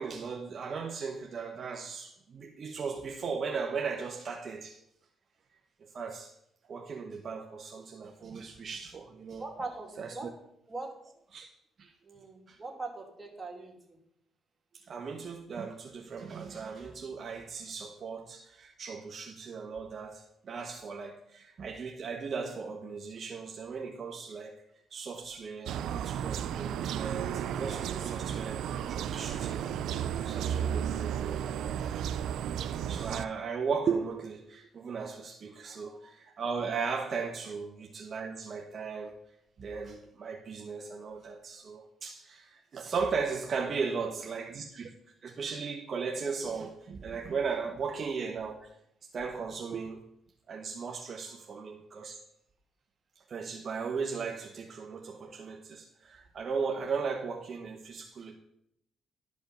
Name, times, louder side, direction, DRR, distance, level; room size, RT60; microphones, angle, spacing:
voice 1, 0.0-4.8 5.8-6.3 6.7-9.4 10.0-10.3 11.3-11.5 11.8-11.9 12.5-12.6 14.7-24.5 24.9-32.4 32.8-39.2 39.6-44.9 45.2-48.7 49.1-50.0 50.5-52.2 53.2-58.4, right 5 dB, 50° right, 0.9 m, -37 dB
voice 2, 9.4-10.3 10.7-11.0 12.0-14.0 35.6-36.0 37.4-37.5 43.6-44.1 51.2-51.3, right 3 dB, 25° right, 2.4 m, -42 dB
sound 1, 25.7-33.2, right 9 dB, 80° right, 0.4 m, -33 dB
12.0 x 5.3 x 5.2 m
cardioid pair, 90°, 0 cm